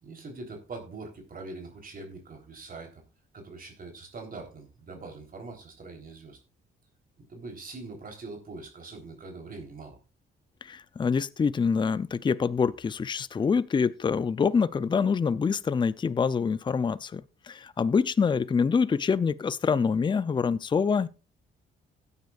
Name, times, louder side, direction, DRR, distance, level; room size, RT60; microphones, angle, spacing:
voice 1, 0.0-3.0 3.3-6.4 7.2-10.0, right 3 dB, 45° right, 3.7 m, -43 dB
voice 2, 10.6-21.1, left 5 dB, 25° left, 0.5 m, -26 dB
16.5 x 9.5 x 2.4 m
cardioid pair, 90°, 20 cm